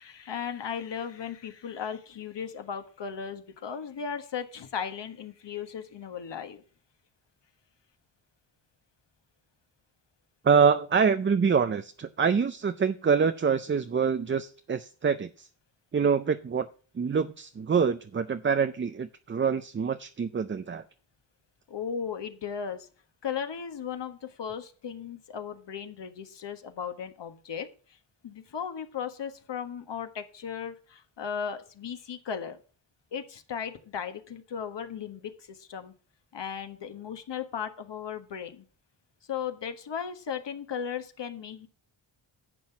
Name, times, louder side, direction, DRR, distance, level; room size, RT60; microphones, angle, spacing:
voice 1, 0.0-6.6 21.7-22.9 23.2-28.0 28.2-32.6 33.1-35.9 36.3-38.6 39.3-41.7, left 7 dB, 60° left, 7 dB, 1.5 m, -36 dB
voice 2, 10.4-15.5 15.9-16.7 17.0-20.8, right 6 dB, 25° right, 9 dB, 0.5 m, -25 dB
10.5 x 7.6 x 5.9 m, 0.40 s
wide cardioid pair, 110°, 47 cm